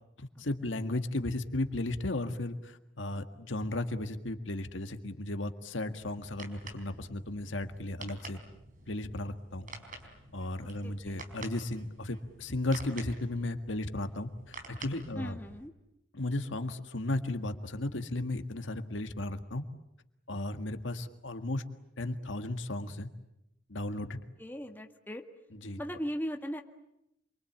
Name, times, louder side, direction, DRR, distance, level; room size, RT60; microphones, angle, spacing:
voice 1, 0.2-8.4 8.9-9.7 10.3-14.3 14.7-15.4 16.1-19.7 20.3-21.6 22.0-23.1 23.7-24.2 25.6-25.8, left 2 dB, 85° left, 7 dB, 1.8 m, -35 dB
sound 1, 6.0-15.7, right 3 dB, 45° right, 4.4 m, -49 dB
voice 2, 10.8-11.2 15.2-15.7 24.4-25.2 25.8-26.6, equal, 10° left, 3 dB, 1.9 m, -38 dB
28.0 x 23.5 x 8.6 m, 0.84 s
head